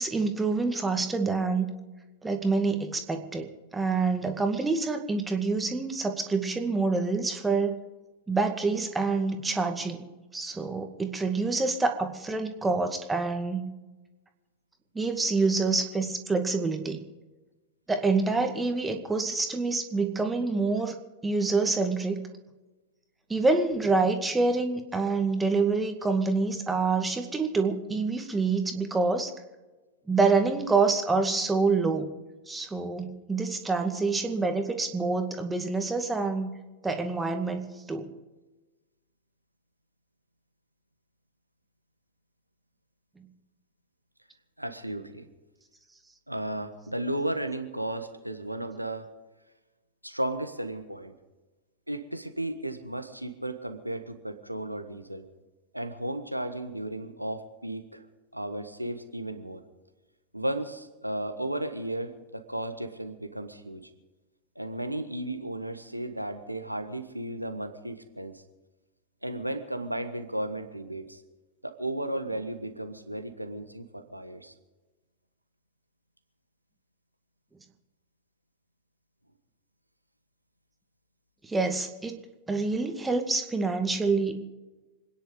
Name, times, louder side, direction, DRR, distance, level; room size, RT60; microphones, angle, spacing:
voice 1, 0.0-1.7 2.2-7.8 8.3-10.0 10.3-13.7 14.9-17.0 17.9-21.0 21.2-22.2 23.3-29.3 30.1-32.1 32.5-36.5 36.8-38.1 81.4-82.2 82.5-84.4, right 3 dB, 10° right, 5 dB, 2.1 m, -27 dB
voice 2, 44.6-45.3 46.3-49.1 50.0-51.1 51.9-55.3 55.7-58.0 58.3-59.6 60.3-63.9 64.5-68.4 69.2-71.2 71.6-74.5, right 1 dB, 90° right, 8 dB, 1.5 m, -34 dB
26.5 x 10.5 x 5.2 m, 1.1 s
figure-of-eight pair, 90°, 0 cm